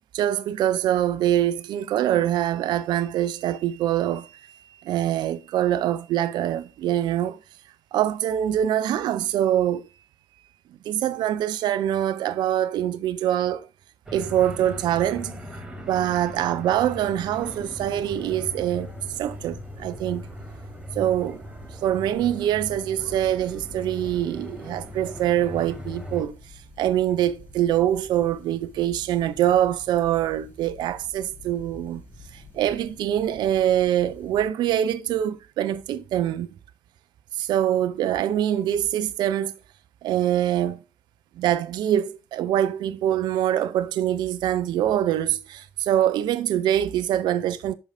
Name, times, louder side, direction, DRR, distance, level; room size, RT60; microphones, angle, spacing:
voice 1, 0.1-4.3 4.8-7.4 7.9-9.8 10.8-13.7 14.1-15.4 15.9-18.9 19.2-20.3 20.9-21.4 21.8-26.4 26.8-32.0 32.3-36.5 37.4-39.5 40.0-40.8 41.4-47.7, right 11 dB, 50° right, 0.6 m, -24 dB
sound 1, 14.1-26.2, left 1 dB, 10° right, 2.6 m, -39 dB
sound 2, 17.3-34.5, left 2 dB, 20° left, 2.8 m, -48 dB
11.0 x 4.8 x 2.5 m
figure-of-eight pair, 55°, 9 cm